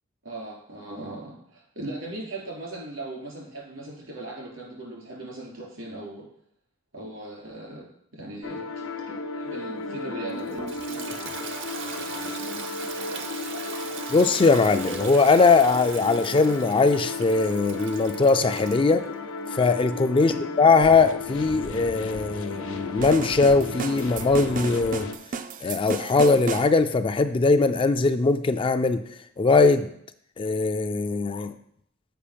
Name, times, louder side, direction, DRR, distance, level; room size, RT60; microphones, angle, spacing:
voice 1, 0.2-6.3 6.9-7.9 8.1-8.9 9.3-10.6 20.2-20.4, right 2 dB, 80° right, -3 dB, 3.4 m, -38 dB
sound 1, 8.4-25.2, left 3 dB, 85° left, 0.7 m, -34 dB
Toilet flush, 10.3-18.9, right 5 dB, 65° right, 0.8 m, -38 dB
voice 2, 14.1-19.0 19.5-20.3 20.6-25.1 25.6-29.0 29.4-29.9 30.4-31.5, left 4 dB, 25° left, 9 dB, 0.3 m, -20 dB
sound 2, 23.0-26.7, right 5 dB, 40° right, 0.4 m, -34 dB
6.9 x 5.2 x 5.1 m, 0.69 s
head